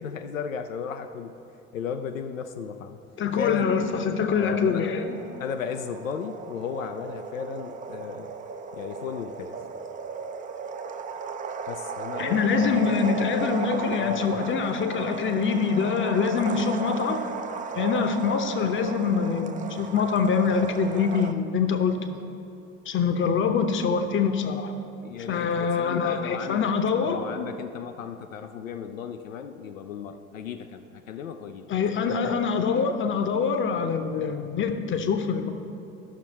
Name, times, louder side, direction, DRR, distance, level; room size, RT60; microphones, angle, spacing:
voice 1, 0.0-1.4 1.7-3.0 3.4-3.7 4.3-4.9 5.4-8.3 8.7-9.5 11.7-13.0 14.0-14.3 16.5-16.6 25.0-26.7 27.0-31.7, left 7 dB, 80° left, 7 dB, 0.5 m, -35 dB
voice 2, 3.2-5.2 12.2-17.2 17.8-22.2 22.9-24.7 25.3-27.2 31.7-35.5, left 6 dB, 30° left, 8 dB, 0.8 m, -25 dB
sound 1, 5.0-21.3, right 5 dB, 20° right, 0.4 m, -35 dB
12.5 x 6.2 x 4.2 m, 2.8 s
figure-of-eight pair, 65°, 39 cm